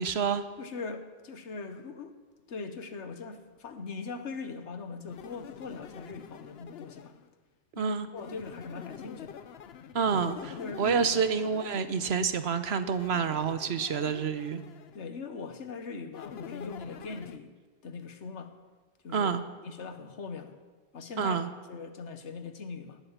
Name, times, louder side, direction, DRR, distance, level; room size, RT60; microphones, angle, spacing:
voice 1, 0.0-0.4 7.8-8.1 9.9-14.6 19.1-19.4 21.2-21.5, right 6 dB, 70° right, 11 dB, 1.1 m, -28 dB
voice 2, 0.6-2.2 2.5-7.1 7.7-9.4 10.6-11.2 14.9-17.5 17.8-18.5 19.0-19.3 19.6-20.6 20.9-21.4 21.7-23.0, left 4 dB, 90° left, 9 dB, 1.5 m, -40 dB
sound 1, 5.1-7.3 8.1-12.3 12.9-15.0 16.1-17.4, left 8 dB, 70° left, 0.9 m, -46 dB
18.5 x 8.5 x 7.3 m, 1.4 s
omnidirectional pair, 1.1 m